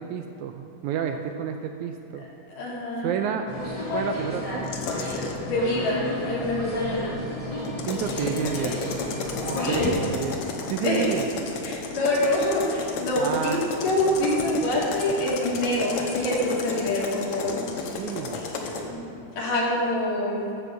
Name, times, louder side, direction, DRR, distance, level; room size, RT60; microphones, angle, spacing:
voice 1, 0.0-2.2 3.0-3.6 3.9-4.7 7.8-8.8 9.5-10.4 10.7-11.3 13.2-13.6 18.0-18.4, right 8 dB, 80° right, 5 dB, 1.8 m, -30 dB
voice 2, 2.2-3.1 5.4-7.1 9.5-9.9 10.8-11.1 11.6-13.3 13.8-17.6 18.3-19.0 19.4-20.4, left 1 dB, 85° left, -5 dB, 3.8 m, -26 dB
sound 1, 3.5-9.9, left 1 dB, 25° left, 0.7 m, -31 dB
sound 2, 4.6-5.4 7.6-18.9, left 4 dB, 65° left, 1.5 m, -33 dB
12.5 x 5.4 x 7.4 m, 2.9 s
omnidirectional pair, 3.7 m